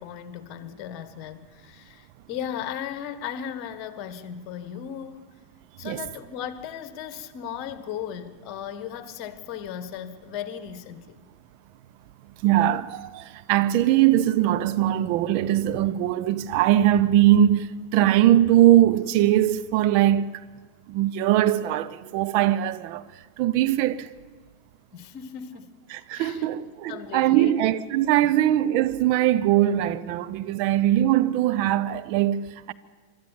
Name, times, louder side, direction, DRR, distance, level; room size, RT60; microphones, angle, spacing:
voice 1, 0.0-5.3 5.8-11.2 24.9-25.8 26.1-26.5 26.9-27.6 28.2-28.3, left 9 dB, 40° left, 1.5 m, -36 dB
voice 2, 12.4-20.3 20.9-23.1 23.4-24.1 25.9-32.7, right 12 dB, 45° right, 0.8 m, -21 dB
24.5 x 13.0 x 9.1 m
figure-of-eight pair, 90°, 0 cm